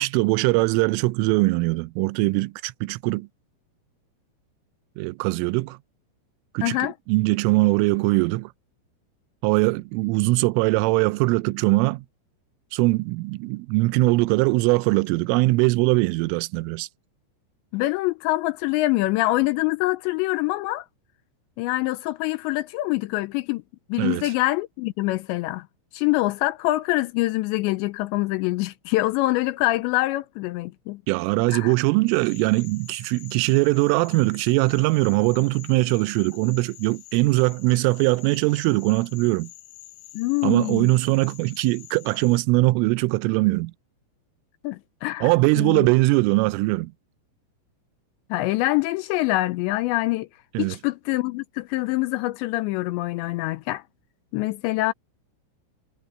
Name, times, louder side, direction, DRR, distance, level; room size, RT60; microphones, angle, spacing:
voice 1, 0.0-3.3 5.0-5.8 6.5-8.5 9.4-12.1 12.7-16.9 24.0-24.3 31.1-39.5 40.4-43.7 45.2-46.9 50.5-50.8, right 22 dB, 90° right, 3.2 m, -21 dB
voice 2, 6.6-6.9 17.7-20.9 21.6-23.6 23.9-25.7 25.9-31.0 31.5-31.7 40.1-40.9 44.6-45.9 48.3-50.3 50.6-53.8 54.3-54.9, left 19 dB, 85° left, 2.6 m, -25 dB
sound 1, 32.1-42.4, left 17 dB, 55° left, 7.1 m, -47 dB
omnidirectional pair, 5.6 m